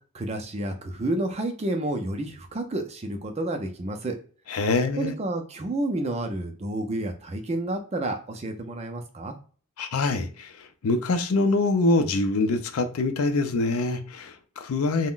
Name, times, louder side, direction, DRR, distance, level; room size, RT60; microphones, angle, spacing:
voice 1, 0.1-4.2 5.0-9.3, right 1 dB, 30° right, 0.4 m, -30 dB
voice 2, 4.5-5.1 9.8-10.5 10.8-15.1, left 3 dB, 85° left, 0.5 m, -24 dB
2.4 x 2.1 x 3.6 m
head